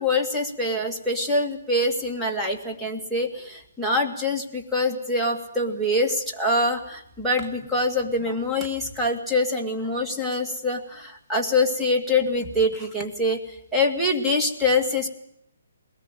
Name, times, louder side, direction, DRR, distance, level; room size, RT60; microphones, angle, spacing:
voice 1, 0.0-13.4 13.7-15.1, left 2 dB, 5° right, 0 dB, 2.3 m, -24 dB
21.0 x 19.0 x 9.1 m, 0.73 s
hypercardioid pair, 155°, 0 cm